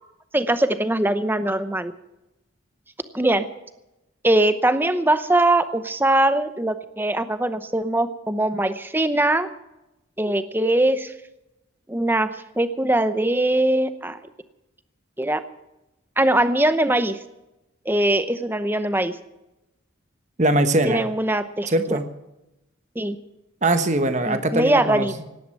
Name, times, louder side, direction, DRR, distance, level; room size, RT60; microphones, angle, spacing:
voice 1, 0.3-1.9 3.1-3.5 4.2-9.5 10.2-11.1 11.9-12.3 12.6-14.2 15.2-15.4 16.2-17.2 17.9-19.2 20.8-22.0 23.0-23.2 24.3-25.1, right 1 dB, 10° right, 11 dB, 0.8 m, -21 dB
voice 2, 20.4-21.0 21.7-22.1 23.6-25.3, right 2 dB, 35° right, 9 dB, 1.2 m, -21 dB
17.5 x 11.0 x 7.7 m, 0.95 s
head